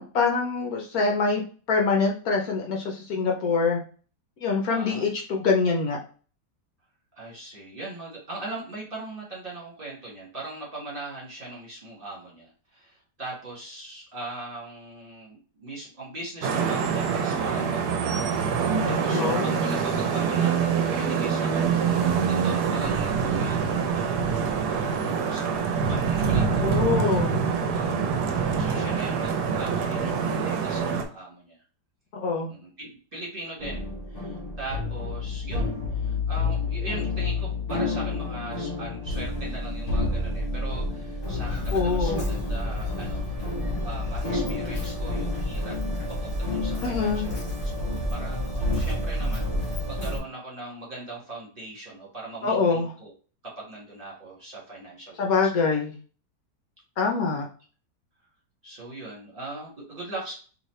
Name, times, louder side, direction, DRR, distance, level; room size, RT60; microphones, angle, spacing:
voice 1, 0.0-1.4 1.7-3.8 4.4-6.0 19.1-19.5 26.6-27.4 32.1-32.5 41.7-42.2 46.8-47.3 52.4-52.9 55.2-55.9 57.0-57.5, left 4 dB, 65° left, 1 dB, 1.1 m, -24 dB
voice 2, 4.7-5.1 7.1-25.6 25.9-27.1 27.7-31.6 32.5-43.2 43.8-45.7 46.2-47.3 47.8-49.4 49.8-53.1 53.6-55.5 57.0-57.4 58.6-60.3, right 2 dB, 30° right, -5 dB, 1.7 m, -40 dB
Vehicle horn car horn honking / Traffic noise roadway noise, 16.4-31.0, right 6 dB, 75° right, 1.2 m, -25 dB
sound 1, 33.6-50.2, left 2 dB, 50° left, 1.4 m, -31 dB
Walk footsteps, 41.2-50.2, left 1 dB, 35° left, 1.6 m, -31 dB
4.0 x 3.0 x 3.1 m, 0.39 s
omnidirectional pair, 1.8 m